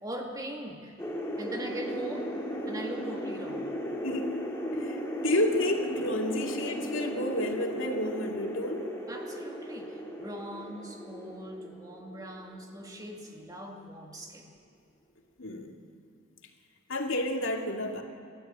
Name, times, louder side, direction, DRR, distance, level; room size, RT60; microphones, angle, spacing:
voice 1, 0.0-1.0 1.4-2.4 2.7-3.7 9.1-14.5, right 1 dB, 20° right, 1 dB, 2.0 m, -41 dB
sound 1, 1.0-13.4, equal, 15° left, 2.4 m, -36 dB
voice 2, 4.8-8.9 15.4-15.8 16.9-18.0, left 1 dB, 75° left, 2 dB, 2.4 m, -30 dB
28.5 x 13.0 x 8.9 m, 2.4 s
head